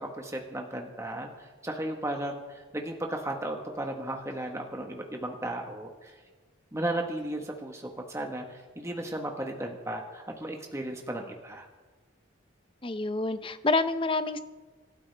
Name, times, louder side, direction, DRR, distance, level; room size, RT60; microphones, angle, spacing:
voice 1, 0.0-6.2 6.7-11.7, right 1 dB, 15° right, 2 dB, 1.3 m, -35 dB
voice 2, 12.8-14.4, left 3 dB, 25° left, 11 dB, 0.6 m, -27 dB
27.0 x 12.5 x 3.4 m, 1.3 s
head